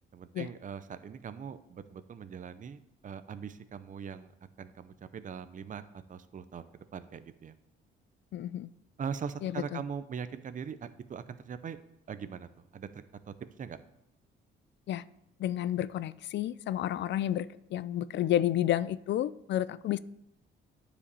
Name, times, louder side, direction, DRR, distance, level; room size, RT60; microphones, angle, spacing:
voice 1, 0.1-4.3 4.6-5.8 6.1-7.5 9.0-11.8 12.1-12.5 12.7-13.0 13.6-13.8, right 7 dB, 40° right, 12 dB, 0.7 m, -41 dB
voice 2, 8.3-8.7 9.4-9.8 14.9-15.0 15.4-20.0, left 12 dB, 65° left, 18 dB, 0.4 m, -31 dB
9.7 x 5.1 x 6.9 m, 0.85 s
cardioid pair, 90°, 20 cm